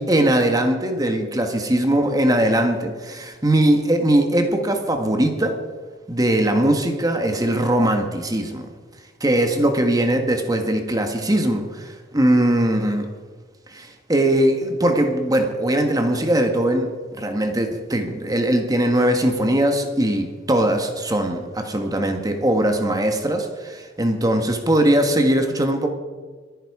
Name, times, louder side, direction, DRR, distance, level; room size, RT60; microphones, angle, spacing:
voice 1, 0.0-5.6 6.1-8.7 9.2-13.1 13.7-25.9, right 1 dB, 20° right, 5 dB, 1.6 m, -20 dB
23.5 x 10.0 x 4.9 m, 1.4 s
head